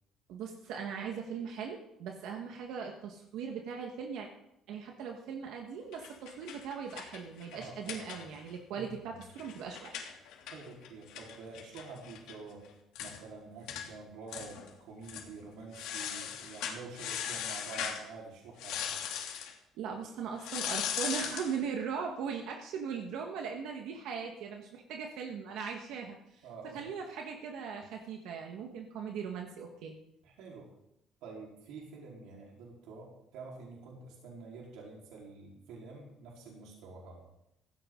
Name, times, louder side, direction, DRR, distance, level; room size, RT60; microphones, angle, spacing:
voice 1, 0.3-4.3 4.7-10.1 19.7-26.5 26.7-29.9, right 6 dB, 70° right, 2 dB, 1.7 m, -39 dB
sound 1, 5.9-8.6 8.9-9.0 9.2-12.3 12.6-12.7 12.9-13.2 13.7-13.9 14.3-14.7 15.0-15.3 15.7-18.0 18.6-19.5 20.4-21.5, left 9 dB, 90° left, 3.0 m, -38 dB
voice 2, 7.5-8.2 8.7-8.9 10.4-12.6 13.0-19.0 26.4-26.8 30.2-30.7 31.2-37.2, right 4 dB, 90° right, -3 dB, 4.3 m, -48 dB
17.0 x 15.5 x 3.9 m, 0.82 s
cardioid pair, 175°, 0 cm